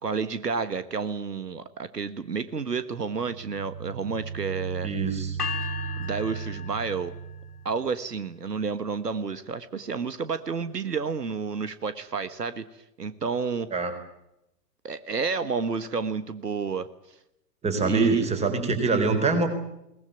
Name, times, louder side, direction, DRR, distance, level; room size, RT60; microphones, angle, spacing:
voice 1, 0.0-4.9 6.0-7.1 7.6-12.6 13.0-13.7 14.8-16.9 17.8-18.3, right 5 dB, 75° right, 14 dB, 1.4 m, -30 dB
sound 1, 3.1-7.8, right 6 dB, 50° right, 2.1 m, -36 dB
voice 2, 4.8-5.4 13.7-13.9 17.6-19.5, right 4 dB, 15° right, 8 dB, 4.2 m, -24 dB
sound 2, 5.4-7.5, left 7 dB, 70° left, 2.7 m, -36 dB
22.5 x 19.5 x 9.1 m, 0.84 s
figure-of-eight pair, 110°, 48 cm